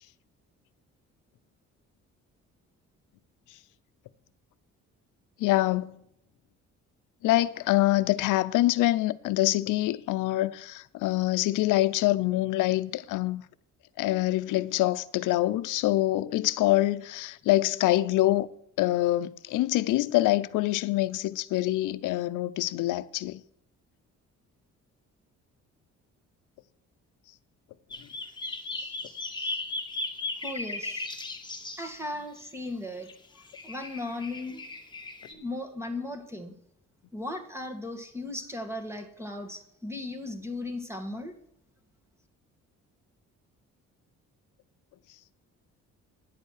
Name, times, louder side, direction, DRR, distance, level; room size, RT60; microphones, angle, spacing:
voice 1, 5.4-6.0 7.2-13.4 14.0-18.5 18.8-23.4, left 16 dB, 90° left, 0.6 m, -25 dB
sound 1, 27.9-31.9 33.1-33.2 33.5-35.3, left 2 dB, 15° left, 2.2 m, -36 dB
voice 2, 30.4-31.1 31.8-33.1 33.6-34.6 35.2-36.5 37.1-41.3, left 2 dB, 10° right, 1.9 m, -36 dB
10.0 x 8.1 x 6.5 m
cardioid pair, 90°, 30 cm